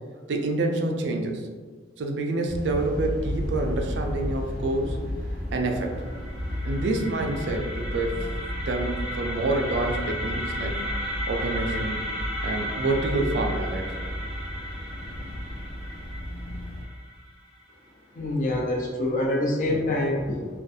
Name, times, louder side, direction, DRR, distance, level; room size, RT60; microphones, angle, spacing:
voice 1, 0.3-1.5 2.0-5.0 5.5-6.0 6.6-8.3 8.7-10.8 11.3-12.1 12.4-14.1, right 2 dB, 75° right, 3 dB, 0.4 m, -27 dB
sound 1, 2.5-16.8, equal, 80° left, 0.8 m, -33 dB
sound 2, 5.7-17.6, equal, 5° right, 0.7 m, -35 dB
voice 2, 18.1-20.6, left 1 dB, 45° left, -2 dB, 0.5 m, -26 dB
2.4 x 2.2 x 2.6 m, 1.5 s
head